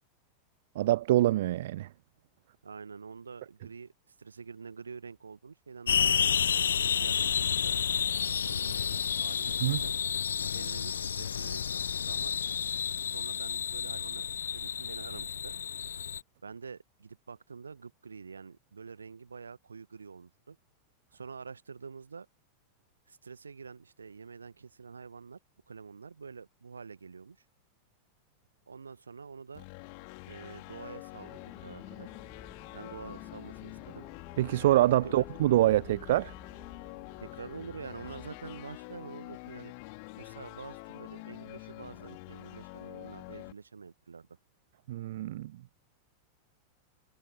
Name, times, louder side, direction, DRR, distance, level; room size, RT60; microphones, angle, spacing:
voice 1, 0.8-1.9 9.6-9.8 34.4-36.3 44.9-45.5, right 14 dB, 55° right, 0.3 m, -25 dB
voice 2, 2.6-6.4 7.0-7.9 8.4-9.9 10.5-12.4 13.0-14.2 14.5-15.5 16.4-20.6 21.1-22.3 23.1-25.4 25.7-27.4 28.7-29.6 30.3-32.1 32.7-34.0 35.0-35.2 35.5-36.1 37.2-39.7 40.2-44.3, right 5 dB, 75° right, 1.4 m, -47 dB
sound 1, 5.9-16.2, left 7 dB, 70° left, 0.3 m, -30 dB
sound 2, 29.5-43.5, left 32 dB, 45° left, 3.0 m, -46 dB
sound 3, 31.2-38.6, left 4 dB, 15° left, 2.7 m, -53 dB
figure-of-eight pair, 90°, 0 cm